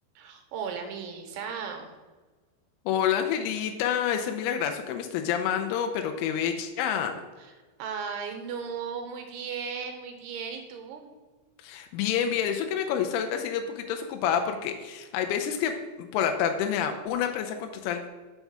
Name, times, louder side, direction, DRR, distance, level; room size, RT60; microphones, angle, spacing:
voice 1, 0.2-1.9 7.4-7.5 7.8-11.1, right 6 dB, 80° right, 4 dB, 2.8 m, -36 dB
voice 2, 2.9-7.1 11.6-18.1, left 8 dB, 85° left, 5 dB, 2.2 m, -28 dB
6.0 x 4.6 x 5.4 m, 1.3 s
omnidirectional pair, 5.0 m